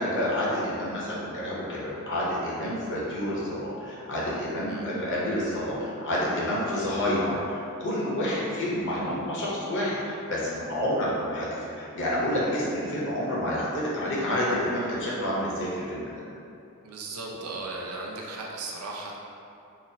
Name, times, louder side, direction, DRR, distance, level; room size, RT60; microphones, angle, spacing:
voice 1, 0.0-16.1, left 1 dB, 60° left, -6 dB, 0.7 m, -29 dB
voice 2, 16.8-19.2, right 3 dB, 75° right, -2 dB, 0.5 m, -37 dB
3.9 x 2.0 x 2.7 m, 2.6 s
head